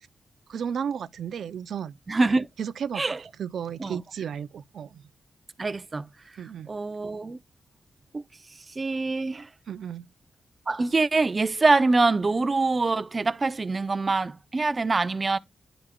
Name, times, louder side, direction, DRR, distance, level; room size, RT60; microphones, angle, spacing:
voice 1, 0.5-1.9 2.6-5.0 6.4-6.7 9.7-10.0, right 8 dB, 85° right, 0.4 m, -33 dB
voice 2, 2.1-2.5 3.0-3.2 3.8-4.0 5.6-6.1 6.7-7.4 8.1-8.2 8.8-9.5 10.7-15.4, right 3 dB, 35° right, 0.6 m, -24 dB
11.5 x 4.9 x 2.2 m
cardioid pair, 90°, 0 cm